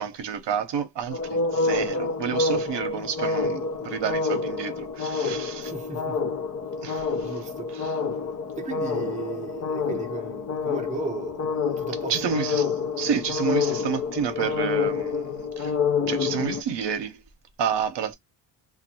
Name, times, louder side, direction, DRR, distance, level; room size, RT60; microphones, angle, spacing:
voice 1, 0.0-5.7 6.8-7.4 7.7-8.0 12.1-15.7 16.1-17.2 17.6-18.1, right 7 dB, 60° right, 0.9 m, -30 dB
sound 1, 1.1-16.6, left 4 dB, 35° left, 0.6 m, -28 dB
voice 2, 5.6-6.2 7.2-7.7 8.6-11.4 11.8-12.3, right 4 dB, 15° right, 0.7 m, -36 dB
2.5 x 2.4 x 2.8 m
cardioid pair, 90°, 47 cm